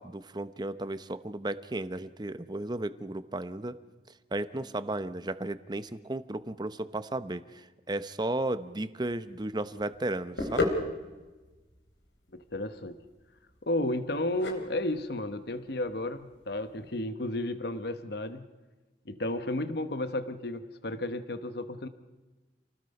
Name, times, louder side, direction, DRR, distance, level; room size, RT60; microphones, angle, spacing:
voice 1, 0.0-3.8 4.3-10.7, right 2 dB, 25° right, 13 dB, 0.8 m, -34 dB
sound 1, 9.0-17.0, left 2 dB, 80° left, 3.8 m, -37 dB
voice 2, 12.3-13.0 13.6-18.5 19.1-21.9, left 1 dB, 60° left, 10 dB, 1.1 m, -33 dB
28.5 x 19.0 x 5.4 m, 1.2 s
head